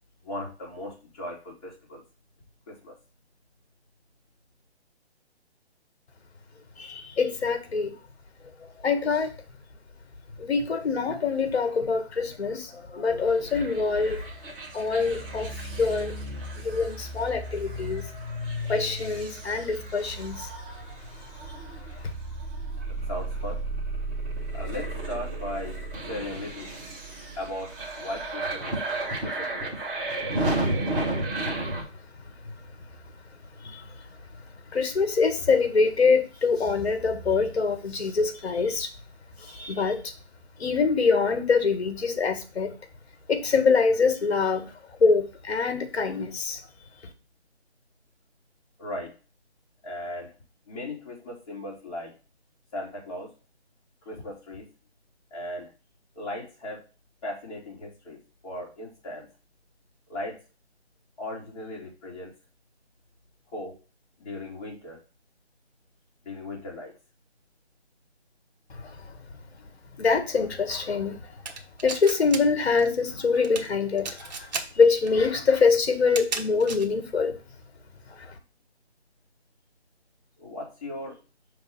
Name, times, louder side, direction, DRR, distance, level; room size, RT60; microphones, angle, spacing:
voice 1, 0.2-2.0 2.7-2.9 22.9-23.6 24.5-26.7 27.3-28.7 29.2-29.7 48.8-49.1 49.8-50.3 50.7-52.1 52.7-53.3 54.0-54.6 55.3-55.7 56.1-56.8 57.2-58.2 58.4-59.3 60.1-60.4 61.2-62.3 63.5-63.8 64.2-65.0 66.2-66.9 80.4-81.2, left 1 dB, 35° left, -4 dB, 3.1 m, -37 dB
voice 2, 6.8-7.9 8.8-9.3 10.4-14.2 14.7-16.1 16.6-18.0 18.7-20.5 33.6-33.8 34.7-38.9 39.5-40.0 40.6-42.7 43.3-44.7 45.0-46.6 68.8-68.9 70.0-71.2 71.8-74.5 74.7-77.4 78.2-78.3, left 4 dB, 65° left, 8 dB, 1.5 m, -24 dB
sound 1, 13.5-31.8, right 2 dB, 10° right, 0.9 m, -33 dB
sound 2, 71.5-72.4 72.6-73.0 73.3-73.7 74.0-74.6 75.1-75.2 76.0-76.9, right 4 dB, 40° right, 1.1 m, -33 dB
5.9 x 3.6 x 5.4 m, 0.33 s
hypercardioid pair, 160°, 34 cm